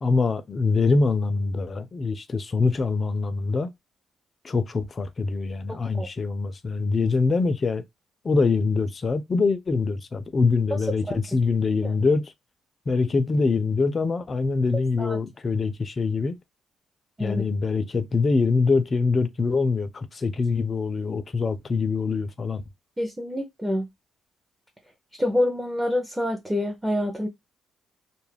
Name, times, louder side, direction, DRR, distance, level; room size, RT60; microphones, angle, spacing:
voice 1, 0.0-3.7 4.4-7.8 8.2-12.3 12.9-16.4 17.2-22.6, left 4 dB, 35° left, 0.4 m, -24 dB
voice 2, 5.7-6.1 11.1-11.2 11.8-11.9 15.0-15.2 17.2-17.4 23.0-23.9 25.1-27.3, left 1 dB, 10° right, 0.6 m, -27 dB
2.3 x 2.0 x 3.2 m
cardioid pair, 90°, 0 cm